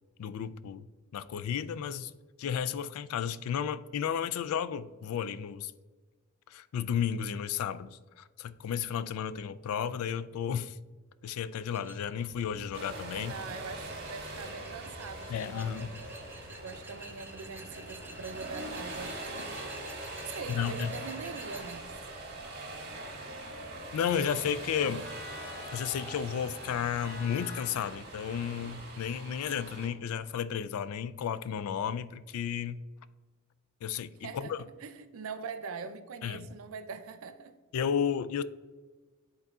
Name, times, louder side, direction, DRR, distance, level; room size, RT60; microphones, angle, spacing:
voice 1, 0.2-0.9 1.1-2.1 2.4-5.7 6.5-10.8 11.2-13.3 15.3-16.0 20.5-21.0 23.9-25.1 25.7-32.8 33.8-34.7 36.2-36.5 37.7-38.4, left 8 dB, 90° left, 0.3 m, -33 dB
sound 1, 11.7-21.8, right 2 dB, 10° right, 0.4 m, -50 dB
sound 2, 12.2-29.0, left 2 dB, 70° left, 0.9 m, -51 dB
sound 3, 12.7-29.9, right 2 dB, 50° right, 1.8 m, -43 dB
voice 2, 13.2-15.8 16.4-19.7 20.2-22.0 34.2-34.5 34.8-37.5, right 5 dB, 75° right, 0.5 m, -43 dB
10.0 x 3.9 x 2.4 m
head